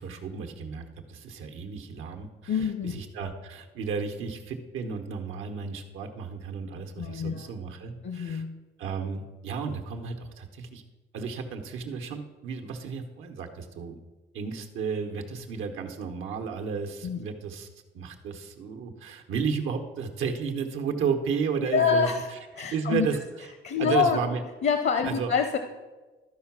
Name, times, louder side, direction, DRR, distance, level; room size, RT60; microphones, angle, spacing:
voice 1, 0.0-2.5 2.8-8.4 8.8-10.8 11.1-14.0 14.3-17.7 17.9-23.1 23.8-24.4 25.0-25.3, right 6 dB, 85° right, 4 dB, 1.1 m, -33 dB
voice 2, 2.5-2.9 7.0-7.5 8.0-8.6 17.0-17.2 21.6-22.3 22.5-23.1 23.6-24.2 24.6-25.6, left 6 dB, 55° left, 8 dB, 0.8 m, -26 dB
12.5 x 4.8 x 6.0 m, 1.2 s
cardioid pair, 115°, 20 cm